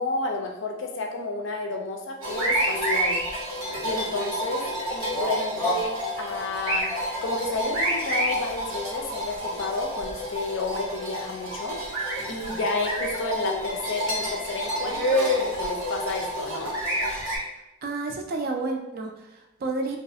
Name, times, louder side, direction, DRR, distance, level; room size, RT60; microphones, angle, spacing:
voice 1, 0.0-3.2 3.8-6.9 7.2-11.8 12.3-16.7, left 3 dB, 60° left, 3 dB, 0.4 m, -31 dB
sound 1, 2.2-17.4, equal, 90° right, 0.9 m, -28 dB
voice 2, 17.8-20.0, right 3 dB, 45° right, 2 dB, 0.3 m, -30 dB
2.4 x 2.4 x 2.6 m, 0.95 s
head